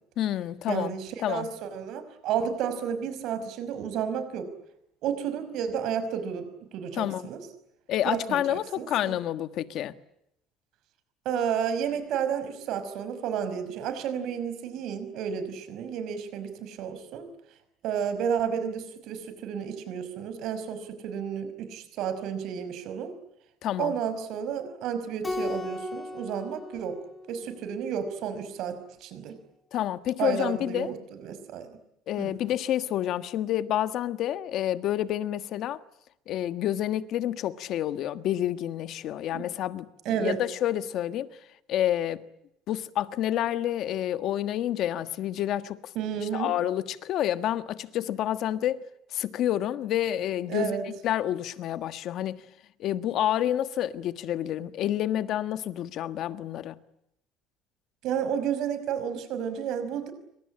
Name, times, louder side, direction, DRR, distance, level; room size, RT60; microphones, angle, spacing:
voice 1, 0.2-0.9 1.2-1.5 6.9-7.3 7.9-9.9 23.6-23.9 29.7-30.9 32.1-35.8 36.3-39.9 40.2-41.3 41.7-42.2 42.7-45.9 46.2-48.8 49.1-52.4 52.8-56.8, left 12 dB, 45° left, 1.4 m, -29 dB
voice 2, 0.7-4.5 5.0-7.4 8.0-9.1 11.3-17.3 17.8-23.1 23.8-27.0 27.3-29.4 30.2-31.8 32.2-32.3 39.3-39.4 40.1-40.4 46.0-46.5 50.5-50.8 58.0-60.1, right 8 dB, 55° right, 5.5 m, -31 dB
Keyboard (musical), 25.2-27.9, left 2 dB, 10° left, 2.8 m, -36 dB
27.0 x 25.0 x 8.8 m
cardioid pair, 175°, 0 cm